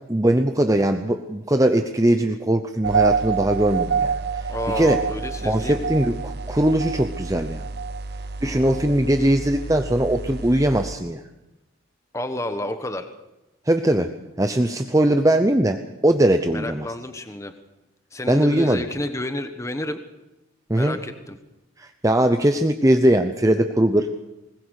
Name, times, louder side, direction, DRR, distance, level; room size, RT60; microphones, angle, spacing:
voice 1, 0.1-4.1 4.7-5.0 5.4-7.6 8.4-11.2 13.7-14.1 14.4-16.9 18.3-18.8 20.7-21.0 21.8-24.1, right 1 dB, 15° right, 7 dB, 0.7 m, -20 dB
sound 1, 2.8-10.9, right 5 dB, 50° right, 0.7 m, -27 dB
voice 2, 4.5-5.8 8.4-8.8 12.1-13.1 16.5-17.6 18.1-20.0 20.7-21.3, left 1 dB, 15° left, 8 dB, 1.2 m, -30 dB
21.0 x 20.0 x 6.5 m, 0.97 s
head